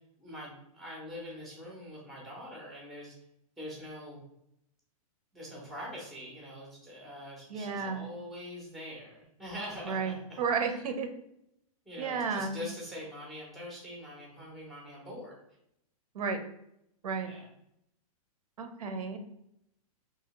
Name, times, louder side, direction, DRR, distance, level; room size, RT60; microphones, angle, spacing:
voice 1, 0.2-3.1 3.6-4.2 5.3-10.4 11.9-15.3 17.2-17.5, equal, ahead, -3 dB, 0.4 m, -44 dB
voice 2, 7.5-8.1 9.8-11.1 12.0-12.6 16.1-16.4 17.0-17.3 18.6-19.2, right 5 dB, 85° right, 6 dB, 0.6 m, -32 dB
2.8 x 2.6 x 2.8 m, 0.78 s
hypercardioid pair, 170°, 19 cm